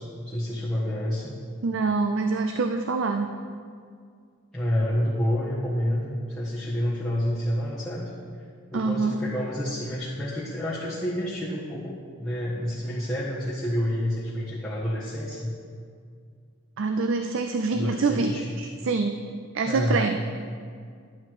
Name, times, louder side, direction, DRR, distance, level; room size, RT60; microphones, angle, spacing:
voice 1, 0.0-1.3 4.5-8.1 8.7-15.5 17.7-18.6 19.6-20.0, equal, 5° left, -11 dB, 1.6 m, -29 dB
voice 2, 1.6-3.4 8.7-9.2 16.8-19.2 19.5-20.2, right 4 dB, 65° right, 7 dB, 0.5 m, -25 dB
11.5 x 8.5 x 4.7 m, 2.1 s
head